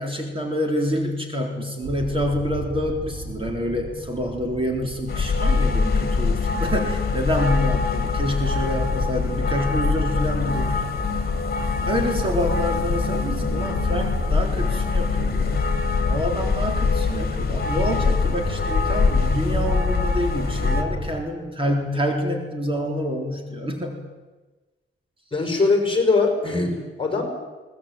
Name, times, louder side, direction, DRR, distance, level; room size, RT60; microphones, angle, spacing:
voice 1, 0.0-10.9 11.9-24.0 25.4-25.6, equal, 25° right, 2 dB, 3.8 m, -27 dB
sound 1, 1.8-21.2, right 1 dB, 45° right, 5.2 m, -34 dB
sound 2, 5.1-20.8, left 4 dB, 50° left, 2.4 m, -23 dB
voice 2, 25.3-27.3, left 3 dB, 25° left, 4 dB, 5.7 m, -21 dB
22.5 x 19.0 x 9.1 m, 1.2 s
wide cardioid pair, 125°, 21 cm